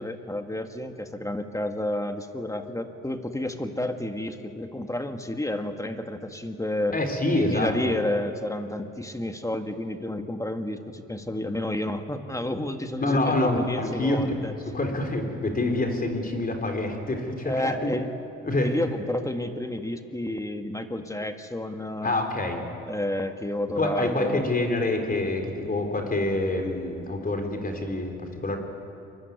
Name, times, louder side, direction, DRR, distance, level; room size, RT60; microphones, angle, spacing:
voice 1, 0.0-7.0 7.3-14.5 17.4-18.1 18.6-22.2 22.9-24.4, left 1 dB, 10° left, 6 dB, 1.8 m, -30 dB
voice 2, 6.9-7.9 13.0-14.4 14.7-17.9 18.4-18.7 22.0-22.6 23.7-28.6, left 2 dB, 30° left, 4 dB, 4.0 m, -26 dB
24.0 x 22.0 x 9.5 m, 2.8 s
cardioid pair, 90°, 30 cm